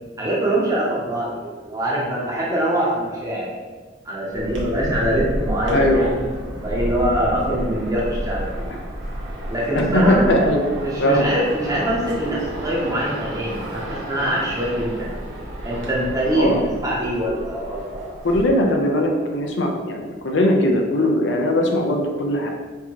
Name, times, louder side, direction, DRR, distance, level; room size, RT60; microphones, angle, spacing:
voice 1, 0.2-3.5 4.0-6.3 6.6-8.7 9.5-10.4 10.7-15.1 15.6-16.5 16.8-18.2, right 1 dB, 20° right, -5 dB, 0.7 m, -23 dB
sound 1, 4.3-18.4, equal, 85° right, 0.9 m, -31 dB
voice 2, 5.7-6.1 8.7-8.8 9.7-10.7 11.0-11.3 16.3-16.7 18.2-22.5, left 1 dB, 75° left, 2 dB, 0.5 m, -19 dB
4.5 x 2.8 x 2.9 m, 1.4 s
head